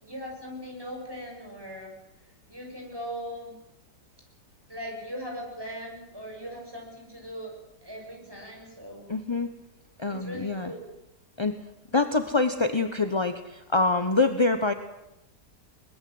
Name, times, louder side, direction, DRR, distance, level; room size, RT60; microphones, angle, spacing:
voice 1, 0.0-2.0 2.5-3.6 4.7-9.1 10.1-10.9, equal, 10° right, 0 dB, 6.9 m, -39 dB
voice 2, 9.1-9.5 10.0-10.7 11.4-11.5 11.9-14.7, left 3 dB, 25° left, 8 dB, 0.7 m, -25 dB
23.0 x 20.5 x 7.8 m, 0.89 s
omnidirectional pair, 1.9 m